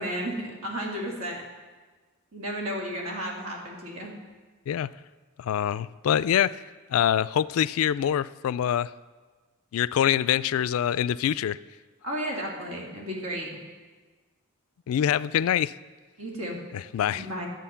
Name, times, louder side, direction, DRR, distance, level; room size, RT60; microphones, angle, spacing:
voice 1, 0.0-1.4 2.3-4.1 12.0-13.5 16.2-16.6 17.1-17.5, equal, 75° right, -1 dB, 2.4 m, -33 dB
voice 2, 5.4-6.6 6.9-8.9 9.7-11.6 14.9-15.7 16.7-17.2, left 10 dB, 70° left, 17 dB, 0.3 m, -25 dB
12.0 x 7.7 x 5.7 m, 1.3 s
head